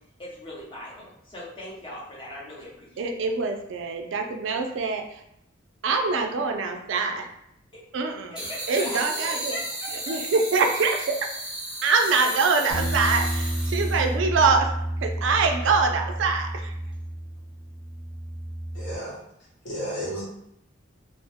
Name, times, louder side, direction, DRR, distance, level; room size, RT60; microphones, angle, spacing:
voice 1, 0.2-3.1 8.3-10.1, left 1 dB, 25° left, -6 dB, 0.8 m, -39 dB
voice 2, 3.0-5.2 5.8-7.2 7.9-8.4 8.7-9.6 10.1-11.3 11.8-14.7 15.0-16.7, right 4 dB, 70° right, 4 dB, 0.4 m, -24 dB
sound 1, 8.4-14.1, right 1 dB, 5° right, 0.5 m, -34 dB
sound 2, 12.7-18.9, right 1 dB, 55° left, 1.0 m, -30 dB
voice 3, 18.7-19.2 19.6-20.2, equal, 75° left, -7 dB, 1.4 m, -32 dB
2.5 x 2.1 x 3.4 m, 0.78 s
head